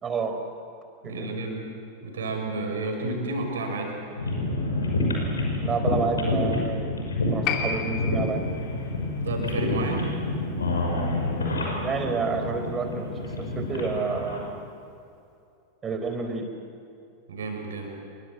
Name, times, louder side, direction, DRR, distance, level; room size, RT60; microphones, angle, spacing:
voice 1, 0.0-0.4 1.0-1.3 5.6-7.0 7.3-8.5 11.8-14.7 15.8-16.5, right 4 dB, 20° right, 6 dB, 4.2 m, -29 dB
voice 2, 1.0-1.7 2.0-4.0 9.2-10.1 17.3-17.9, right 2 dB, 65° right, 2 dB, 6.8 m, -30 dB
sound 1, 4.2-14.4, left 2 dB, 70° left, 6.2 m, -28 dB
Piano, 7.4-14.4 14.7-14.8, left 6 dB, 40° left, 3.2 m, -37 dB
28.5 x 24.0 x 8.2 m, 2.6 s
figure-of-eight pair, 90°, 0 cm